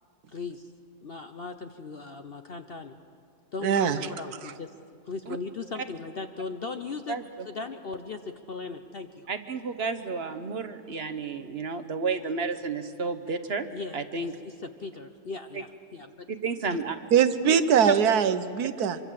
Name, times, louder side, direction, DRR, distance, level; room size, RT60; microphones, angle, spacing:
voice 1, 0.3-0.7 1.0-3.0 3.5-4.7 5.0-7.2 7.4-9.3 13.7-14.0 14.4-16.3, left 4 dB, 50° left, 8 dB, 0.8 m, -38 dB
voice 2, 3.6-4.0 17.1-19.0, right 8 dB, 70° right, 11 dB, 1.4 m, -22 dB
voice 3, 7.1-7.5 9.3-13.7 13.9-14.3 15.5-15.6 16.3-17.0, right 4 dB, 45° right, 9 dB, 1.1 m, -31 dB
25.0 x 24.0 x 7.6 m, 2.3 s
omnidirectional pair, 1.7 m